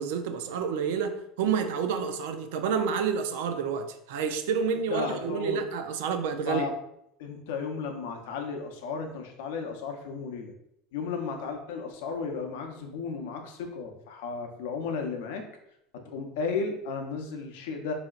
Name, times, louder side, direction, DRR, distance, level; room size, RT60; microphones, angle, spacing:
voice 1, 0.0-6.7, right 6 dB, 85° right, 0.4 m, -29 dB
voice 2, 4.9-5.6 6.4-6.7 7.2-10.5 10.9-15.4 15.9-17.9, left 5 dB, 80° left, 0.7 m, -34 dB
4.2 x 2.7 x 2.4 m
cardioid pair, 175°, 0 cm